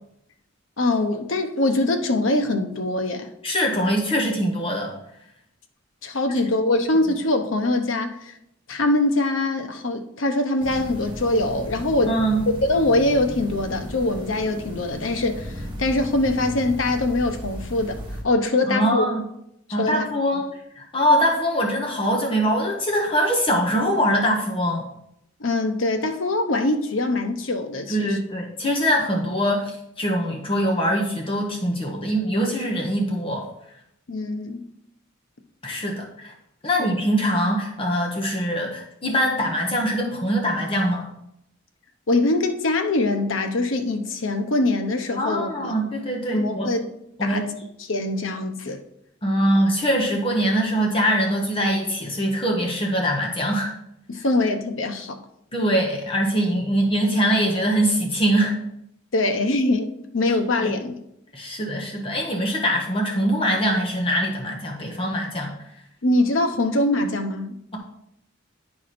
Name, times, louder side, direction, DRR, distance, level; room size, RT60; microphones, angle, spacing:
voice 1, 0.8-3.3 6.0-8.3 8.7-12.2 12.5-15.5 15.8-18.0 18.2-19.1 19.8-20.0 20.3-20.4 25.4-28.2 34.1-34.6 36.8-36.9 42.1-45.7 46.3-46.9 47.2-47.5 47.8-48.8 54.1-55.2 59.1-60.9 66.0-67.6, left 2 dB, 85° left, 6 dB, 0.9 m, -23 dB
voice 2, 3.4-4.9 12.1-12.4 18.6-19.2 19.7-20.5 20.8-24.9 27.9-33.5 35.6-36.3 36.6-41.1 45.2-46.7 47.2-47.5 49.2-53.7 55.5-58.5 60.6-60.7 61.3-65.5, equal, 30° left, 0 dB, 1.1 m, -23 dB
sound 1, 10.6-18.2, equal, 25° right, 2.1 m, -35 dB
10.5 x 4.8 x 4.3 m, 0.77 s
head